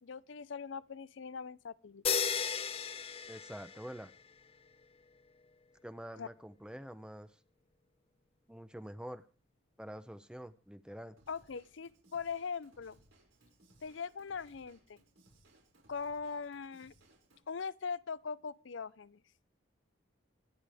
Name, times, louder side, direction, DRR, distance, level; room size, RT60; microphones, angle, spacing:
voice 1, 0.0-2.0 6.2-6.3 11.3-13.0 13.8-15.0 15.9-16.9 17.5-19.2, left 5 dB, 75° left, 0.5 m, -41 dB
sound 1, 2.0-4.2, left 6 dB, 30° left, 0.8 m, -35 dB
voice 2, 3.3-4.1 5.8-7.4 8.5-9.2 9.8-11.2, equal, 5° right, 0.6 m, -46 dB
Drum kit / Drum, 11.2-17.4, right 1 dB, 80° right, 5.7 m, -66 dB
24.5 x 9.3 x 3.5 m
head